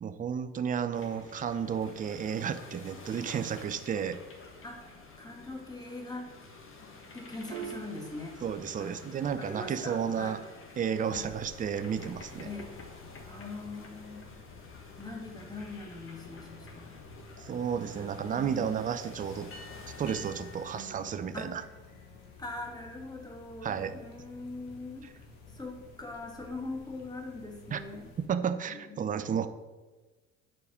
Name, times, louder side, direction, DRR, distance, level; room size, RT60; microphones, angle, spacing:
voice 1, 0.0-4.2 8.4-10.4 10.8-12.5 17.4-19.5 20.0-21.6 23.6-24.0 27.7-27.8 28.3-29.5, right 7 dB, 20° right, 11 dB, 0.5 m, -32 dB
sound 1, 0.9-20.9, left 3 dB, 35° left, 1.4 m, -50 dB
voice 2, 4.6-6.3 6.8-8.4 8.8-10.4 11.1-11.3 12.4-12.7 13.3-14.3 15.0-17.0 18.0-18.8 20.7-21.5 22.4-25.1 25.5-28.1 28.7-29.0, left 2 dB, 10° left, 2 dB, 1.7 m, -42 dB
Piano, 7.5-14.4, right 10 dB, 90° right, 0.6 m, -50 dB
sound 2, 11.1-28.3, left 3 dB, 75° left, 1.4 m, -52 dB
5.0 x 4.6 x 6.0 m, 1.3 s
hypercardioid pair, 65°, 39 cm